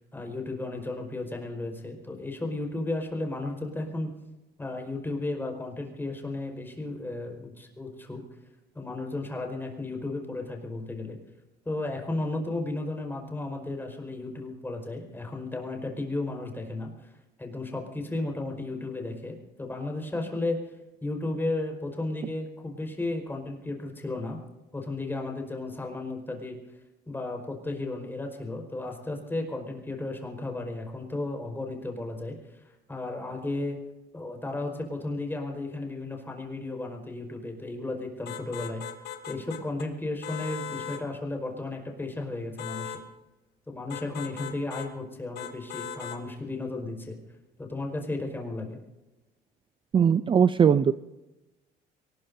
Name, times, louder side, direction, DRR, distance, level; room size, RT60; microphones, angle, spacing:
voice 1, 0.1-4.1 4.6-8.2 8.7-11.2 11.6-17.1 17.4-20.7 21.0-24.4 24.7-26.6 27.1-32.6 32.9-33.8 34.1-38.8 39.3-42.9 43.7-47.2 47.6-48.8, left 2 dB, 10° left, 2 dB, 4.8 m, -34 dB
sound 1, 38.3-39.9 40.2-41.1 42.6-43.0 43.9-44.9 45.4-46.2, left 8 dB, 75° left, 1.5 m, -38 dB
voice 2, 49.9-50.9, right 7 dB, 30° right, 13 dB, 0.5 m, -20 dB
23.5 x 20.0 x 2.7 m, 1.0 s
cardioid pair, 110°, 17 cm